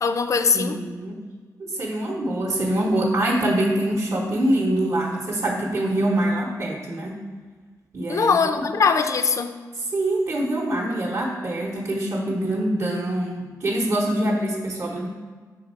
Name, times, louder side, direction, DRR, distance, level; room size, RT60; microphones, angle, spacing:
voice 1, 0.0-0.8 8.1-9.6, left 5 dB, 50° left, 9 dB, 0.4 m, -21 dB
voice 2, 0.5-1.2 1.6-7.2 7.9-8.6 9.8-15.1, right 1 dB, 50° right, -4 dB, 0.8 m, -24 dB
6.0 x 3.9 x 4.4 m, 1.5 s
wide cardioid pair, 90°, 7 cm